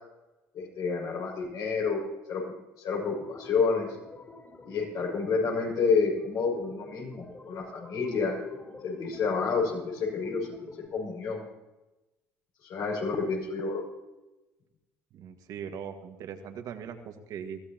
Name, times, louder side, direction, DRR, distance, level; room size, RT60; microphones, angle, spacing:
voice 1, 0.5-2.0 2.3-3.9 4.6-8.4 8.8-10.5 10.9-11.4 12.7-13.8, left 4 dB, 60° left, -1 dB, 6.7 m, -29 dB
sound 1, 3.0-10.9, left 3 dB, 25° left, 4.6 m, -46 dB
voice 2, 15.1-17.6, right 7 dB, 60° right, 5 dB, 1.9 m, -40 dB
22.0 x 16.0 x 3.0 m, 1.1 s
hypercardioid pair, 70°, 7 cm